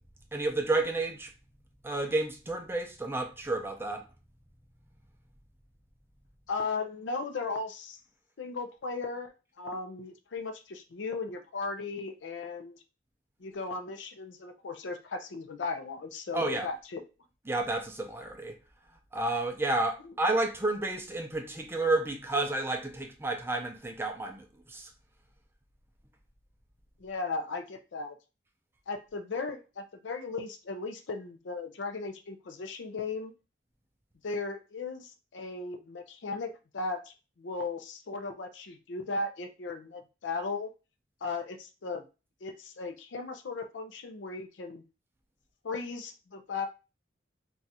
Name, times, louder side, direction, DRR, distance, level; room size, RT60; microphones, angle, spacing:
voice 1, 0.3-1.3 1.8-4.0 16.3-16.7 17.5-18.6 19.1-24.9, right 2 dB, 15° right, 0.5 m, -31 dB
voice 2, 6.5-8.0 8.4-12.8 13.4-17.0 20.0-20.1 27.0-28.2 28.9-33.3 34.2-40.7 41.2-42.0 42.4-44.8 45.6-46.7, left 3 dB, 90° left, 0.5 m, -36 dB
2.5 x 2.3 x 4.1 m
head